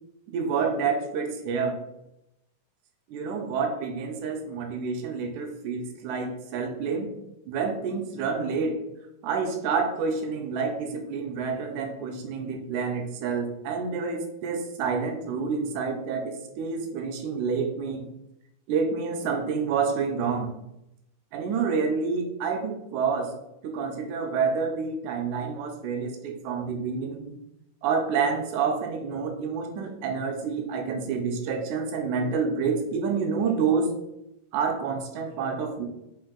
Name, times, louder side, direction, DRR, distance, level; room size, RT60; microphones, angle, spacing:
voice 1, 0.3-1.8 3.1-7.1 7.5-8.8 9.2-18.0 18.7-20.5 21.3-23.3 23.6-27.3 27.8-33.9 34.5-35.9, right 5 dB, 85° right, 3 dB, 2.0 m, -28 dB
5.4 x 2.6 x 3.7 m, 0.85 s
omnidirectional pair, 3.5 m